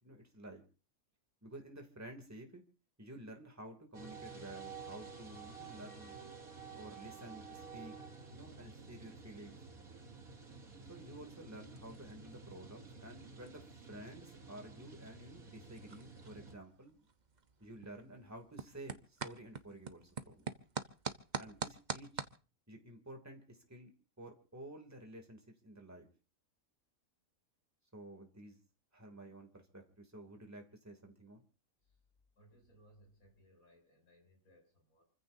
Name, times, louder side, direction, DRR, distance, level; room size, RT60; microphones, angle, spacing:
voice 1, 0.0-0.6 1.4-2.6 3.0-6.2 6.8-7.9 8.3-9.6 10.9-17.0 17.6-20.6 21.4-22.2 22.7-23.9 24.2-26.1 27.9-28.6 28.9-31.4, right 1 dB, 10° right, 3 dB, 2.6 m, -52 dB
sound 1, 3.9-16.6, right 5 dB, 85° right, 3.4 m, -51 dB
sound 2, 9.7-22.4, right 5 dB, 35° right, 1.0 m, -48 dB
voice 2, 32.4-35.0, equal, 90° left, 1 dB, 8.0 m, -65 dB
29.0 x 15.0 x 2.7 m, 0.36 s
omnidirectional pair, 1.5 m